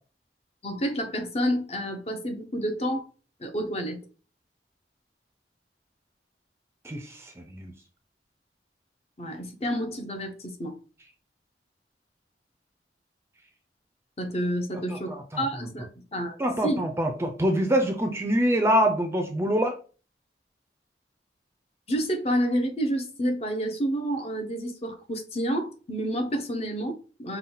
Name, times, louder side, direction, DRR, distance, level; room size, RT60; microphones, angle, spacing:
voice 1, 0.6-3.1 3.4-4.0 9.2-10.8 14.2-16.4 16.6-16.8 21.9-27.4, equal, 35° left, 0.8 m, -29 dB
voice 2, 6.8-7.7 15.1-15.4 16.4-19.8, equal, 15° right, 0.5 m, -25 dB
5.5 x 2.3 x 3.9 m
head